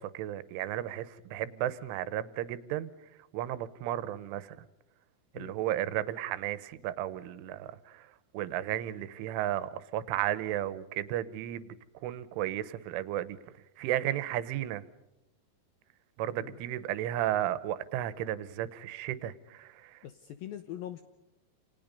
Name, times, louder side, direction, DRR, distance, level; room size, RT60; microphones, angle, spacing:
voice 1, 0.0-2.9 3.3-4.6 5.4-8.1 8.3-11.7 12.0-13.4 13.8-14.8 16.2-20.0, right 12 dB, 85° right, 15 dB, 3.5 m, -34 dB
voice 2, 20.0-21.0, left 11 dB, 75° left, 9 dB, 2.2 m, -42 dB
28.5 x 28.5 x 5.4 m, 0.91 s
omnidirectional pair, 5.5 m